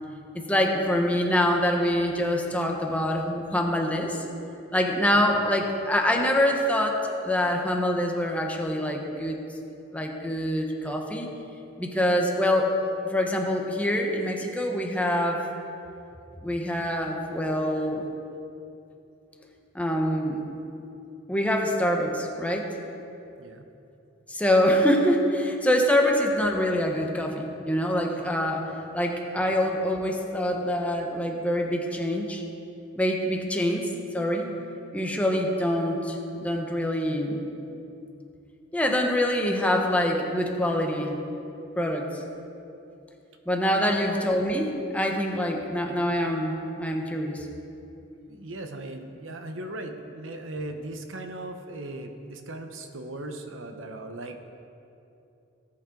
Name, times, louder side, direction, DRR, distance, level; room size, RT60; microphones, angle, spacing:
voice 1, 0.3-4.2 4.7-9.4 9.9-11.3 11.8-12.7 13.0-15.4 16.4-18.1 19.7-20.5 21.3-22.7 24.3-32.4 33.0-34.5 34.9-37.4 38.7-41.2 41.8-42.1 43.5-47.5, equal, 5° left, 1 dB, 1.1 m, -25 dB
voice 2, 43.8-44.3 48.3-54.4, right 2 dB, 85° right, 6 dB, 1.0 m, -38 dB
18.0 x 8.6 x 3.9 m, 2.8 s
head